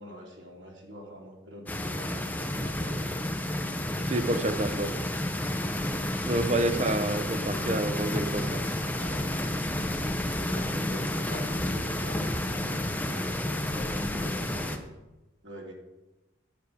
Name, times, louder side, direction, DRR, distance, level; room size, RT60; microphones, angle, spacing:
voice 1, 0.0-4.6 6.2-7.9 8.9-9.6 10.5-14.9 15.4-15.7, equal, 90° right, -1 dB, 2.9 m, -45 dB
sound 1, 1.7-14.8, left 1 dB, 10° left, 0.7 m, -30 dB
voice 2, 4.1-4.9 6.2-8.6, right 1 dB, 35° right, 10 dB, 0.6 m, -28 dB
10.5 x 6.5 x 7.0 m, 1.1 s
head